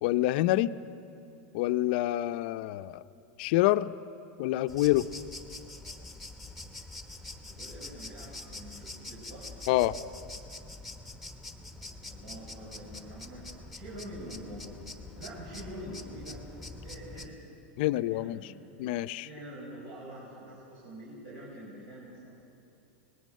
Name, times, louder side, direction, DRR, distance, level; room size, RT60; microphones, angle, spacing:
voice 1, 0.0-0.7 1.5-3.0 3.4-3.9 4.4-5.1 9.7-9.9 17.8-18.5 18.8-19.3, left 16 dB, 55° left, 12 dB, 0.6 m, -27 dB
sound 1, 4.7-17.3, left 2 dB, ahead, 1.2 m, -45 dB
voice 2, 7.5-9.5 12.1-13.5 13.7-14.7 15.1-16.4 16.8-17.4 17.9-18.8 19.2-22.3, right 1 dB, 65° right, -5 dB, 6.0 m, -45 dB
25.0 x 20.0 x 6.5 m, 2.8 s
supercardioid pair, 150°, 6 cm